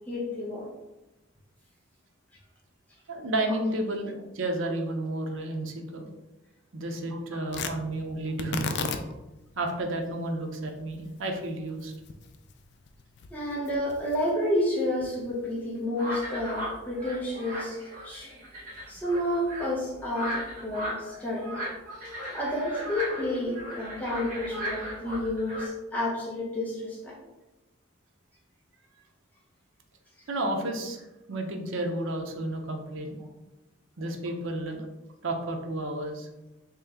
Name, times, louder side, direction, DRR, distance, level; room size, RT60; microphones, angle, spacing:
voice 1, 0.1-0.7 3.5-3.6 13.3-17.8 18.0-18.3 18.9-21.6 22.3-27.2, left 1 dB, 10° left, -5 dB, 0.7 m, -30 dB
voice 2, 3.1-6.1 6.7-9.0 9.6-11.9 30.3-33.2 34.0-34.9 35.2-36.3, right 1 dB, 80° right, 3 dB, 0.6 m, -32 dB
Tearing, 7.5-15.8, left 5 dB, 55° left, 0.3 m, -39 dB
sound 1, 16.0-25.7, equal, 40° right, 1.2 m, -37 dB
3.2 x 2.9 x 3.6 m, 1.0 s
head